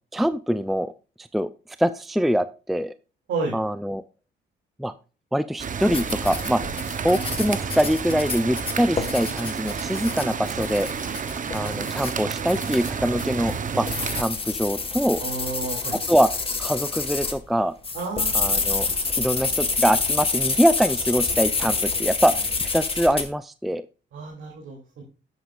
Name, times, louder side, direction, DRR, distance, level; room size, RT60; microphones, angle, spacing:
voice 1, 0.1-0.9 1.3-1.5 1.8-2.9 3.5-4.0 4.8-4.9 5.3-6.6 7.0-10.9 11.5-13.9 14.1-15.2 15.9-16.3 16.6-17.7 18.3-18.9 19.2-22.3 22.6-23.8, equal, ahead, 13 dB, 0.5 m, -23 dB
sound 1, 5.6-14.2, right 6 dB, 40° right, 0.9 m, -30 dB
sound 2, 5.9-17.4 17.8-23.3, left 4 dB, 30° left, 1.8 m, -28 dB
voice 2, 15.2-16.0 17.9-18.4 24.1-25.0, right 4 dB, 75° right, -1 dB, 2.9 m, -31 dB
11.5 x 8.2 x 2.5 m, 0.34 s
cardioid pair, 90°, 20 cm